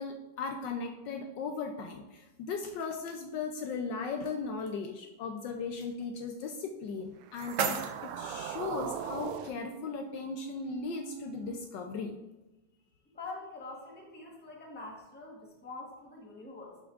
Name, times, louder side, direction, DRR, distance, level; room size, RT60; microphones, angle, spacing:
voice 1, 0.0-12.2, left 4 dB, 70° left, 4 dB, 1.2 m, -37 dB
sound 1, 6.8-8.8, right 6 dB, 60° right, 0.8 m, -36 dB
sound 2, 7.2-11.6, right 8 dB, 85° right, 1.4 m, -41 dB
voice 2, 13.0-16.8, left 3 dB, 5° left, -1 dB, 1.0 m, -45 dB
11.0 x 6.9 x 2.5 m, 1.1 s
omnidirectional pair, 2.2 m